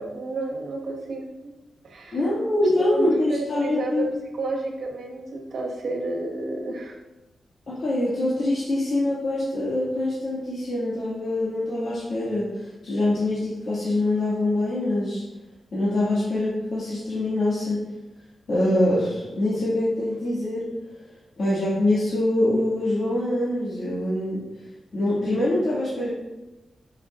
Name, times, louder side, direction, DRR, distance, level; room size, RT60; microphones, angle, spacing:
voice 1, 0.0-1.5 1.8-2.2 2.6-4.1 4.3-7.0, right 2 dB, 65° right, 0 dB, 1.5 m, -31 dB
voice 2, 2.1-4.1 7.7-15.2 15.7-17.8 18.5-20.6 21.4-24.4 24.9-26.1, left 1 dB, 55° left, -9 dB, 2.1 m, -24 dB
12.0 x 5.6 x 2.5 m, 1.0 s
wide cardioid pair, 160°, 0 cm